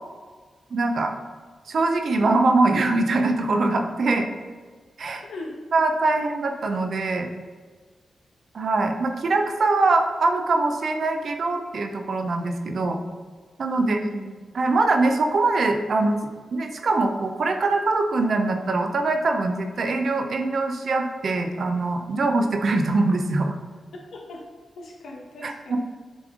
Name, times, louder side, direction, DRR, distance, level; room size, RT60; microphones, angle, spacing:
voice 1, 0.7-1.1 1.7-4.3 5.0-5.2 5.7-7.3 8.5-13.0 13.6-14.0 14.5-16.2 16.5-23.5 25.4-25.8, right 3 dB, 65° right, 5 dB, 0.7 m, -23 dB
voice 2, 5.2-5.6 13.8-14.3 24.1-24.4 24.8-25.8, left 1 dB, 75° left, -1 dB, 1.2 m, -36 dB
7.7 x 3.4 x 3.7 m, 1.4 s
cardioid pair, 50°, 0 cm